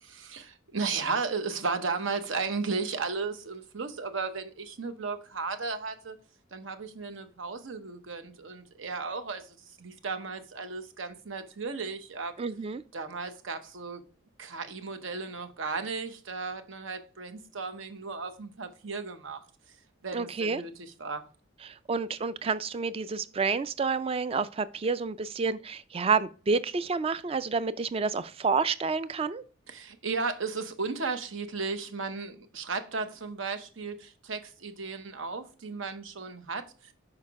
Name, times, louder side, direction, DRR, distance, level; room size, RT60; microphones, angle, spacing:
voice 1, 0.0-6.2 6.5-12.3 12.9-14.0 14.4-19.4 20.0-21.2 29.7-36.9, right 4 dB, 80° right, 0.8 m, -35 dB
voice 2, 12.4-12.8 20.1-20.6 21.7-29.4, right 4 dB, 30° right, 0.3 m, -29 dB
6.5 x 4.9 x 3.5 m
head